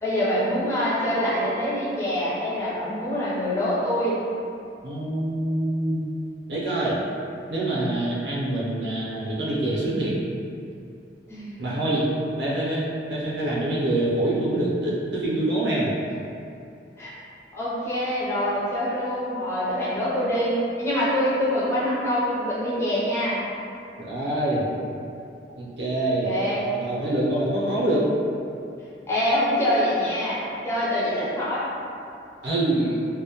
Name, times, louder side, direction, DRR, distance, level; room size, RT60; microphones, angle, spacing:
voice 1, 0.0-4.2 11.3-11.6 17.0-17.1 17.5-23.4 26.2-26.6 29.1-31.6, equal, 15° left, -10 dB, 0.5 m, -25 dB
voice 2, 4.8-6.0 6.5-7.0 7.5-10.1 11.6-12.1 12.4-15.9 24.0-24.6 25.5-26.3 26.7-28.1 32.4-33.0, right 1 dB, 70° right, -6 dB, 0.5 m, -25 dB
2.1 x 2.1 x 2.9 m, 2.5 s
head